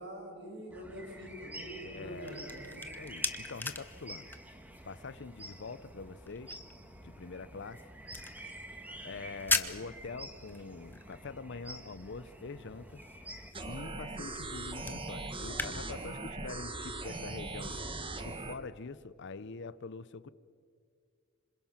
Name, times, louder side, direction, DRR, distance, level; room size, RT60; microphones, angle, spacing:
voice 1, 0.0-2.9, right 1 dB, 55° right, 6.5 m, -45 dB
sound 1, 0.7-13.5, right 1 dB, 10° right, 1.5 m, -49 dB
voice 2, 1.8-2.4 2.8-4.3 4.8-6.6 7.0-7.9 9.0-13.0 13.6-17.8 18.2-20.3, left 4 dB, 55° left, 0.7 m, -44 dB
sound 2, 2.0-15.7, left 3 dB, 10° left, 0.9 m, -41 dB
sound 3, 13.5-18.5, right 2 dB, 25° right, 1.4 m, -40 dB
26.5 x 26.0 x 5.9 m
head